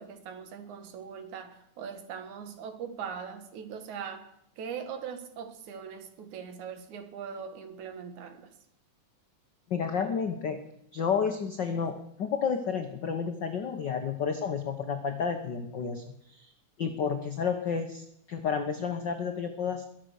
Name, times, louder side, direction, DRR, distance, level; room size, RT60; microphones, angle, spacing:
voice 1, 0.0-8.5, right 7 dB, 70° right, 2.9 m, -41 dB
voice 2, 9.7-10.6 10.9-16.5 16.8-19.9, left 6 dB, 80° left, 1.0 m, -31 dB
21.5 x 8.2 x 6.4 m
omnidirectional pair, 3.6 m